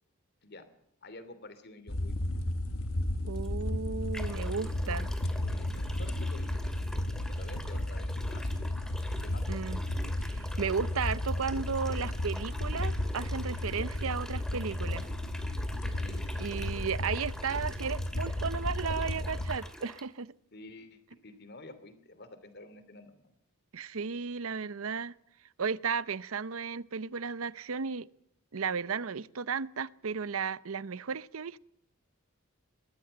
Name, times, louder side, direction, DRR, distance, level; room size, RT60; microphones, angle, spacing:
voice 1, 1.0-2.1 4.8-8.7 9.1-9.4 15.9-17.3 20.5-23.3, left 2 dB, 55° left, 2.9 m, -50 dB
sound 1, 1.9-19.6, left 1 dB, 80° left, 1.7 m, -33 dB
voice 2, 3.2-5.1 9.5-9.8 10.3-15.1 16.4-20.3 23.7-25.1 25.6-28.1 28.5-31.6, right 5 dB, 85° right, 0.7 m, -34 dB
sound 2, 3.4-3.5 4.1-20.0, equal, 5° left, 2.3 m, -46 dB
21.0 x 15.5 x 8.0 m
head